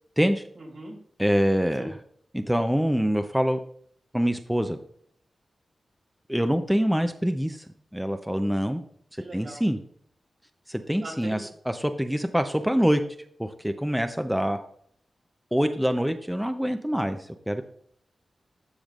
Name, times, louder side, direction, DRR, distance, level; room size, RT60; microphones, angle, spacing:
voice 1, 0.5-0.9 1.7-1.9 9.2-9.6 11.0-11.4, right 2 dB, 75° right, -2 dB, 3.1 m, -40 dB
voice 2, 1.2-2.0 2.3-3.6 4.1-4.8 6.3-7.6 7.9-8.8 9.3-9.8 10.7-13.0 13.4-14.6 15.5-17.2 17.5-17.6, equal, 5° right, 7 dB, 0.7 m, -25 dB
13.5 x 5.1 x 2.5 m, 0.63 s
cardioid pair, 55°, 0 cm